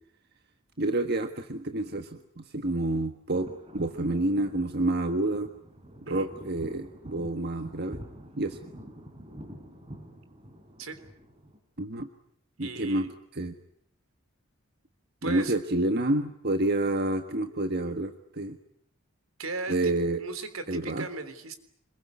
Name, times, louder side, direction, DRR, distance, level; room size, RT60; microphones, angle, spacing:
voice 1, 0.8-5.5 6.1-8.0 8.4-8.6 11.8-12.1 12.6-13.5 15.2-18.6 19.7-20.2 20.7-21.1, right 2 dB, 50° right, 7 dB, 1.5 m, -29 dB
sound 1, 3.3-11.6, equal, 30° right, 3.8 m, -47 dB
voice 2, 12.6-13.1 15.2-15.6 19.4-19.9 20.2-21.6, right 3 dB, 80° right, 10 dB, 3.5 m, -37 dB
26.5 x 22.5 x 9.5 m, 0.68 s
head